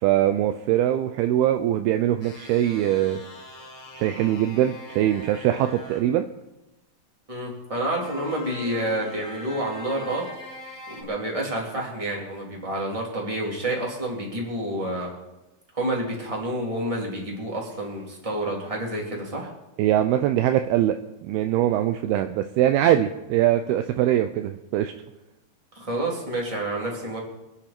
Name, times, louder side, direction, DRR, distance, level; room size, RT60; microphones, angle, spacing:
voice 1, 0.0-3.2 4.0-6.3 19.8-21.0 21.2-24.9, right 12 dB, 80° right, 8 dB, 2.4 m, -22 dB
sound 1, 2.2-6.1 8.0-11.0, left 1 dB, 70° left, 1.0 m, -42 dB
voice 2, 7.3-10.2 10.9-15.1 15.7-19.5 25.7-27.2, right 1 dB, 10° right, -3 dB, 2.8 m, -29 dB
24.5 x 9.9 x 4.5 m, 0.98 s
omnidirectional pair, 4.8 m